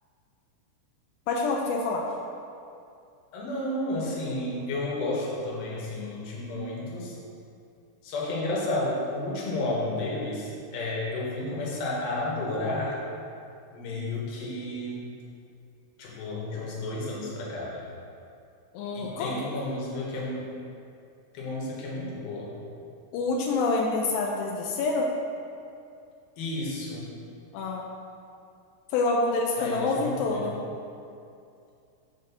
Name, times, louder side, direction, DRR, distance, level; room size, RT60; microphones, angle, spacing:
voice 1, 1.3-2.0 18.7-19.3 23.1-25.1 27.5-27.8 28.9-30.6, left 3 dB, 85° left, -1 dB, 2.4 m, -27 dB
voice 2, 3.3-7.1 8.0-13.0 13.7-15.1 16.0-17.8 18.9-20.4 21.3-22.5 26.4-27.1 29.6-30.5, left 2 dB, 65° left, -5 dB, 2.7 m, -32 dB
7.8 x 4.5 x 5.8 m, 2.5 s
omnidirectional pair, 5.6 m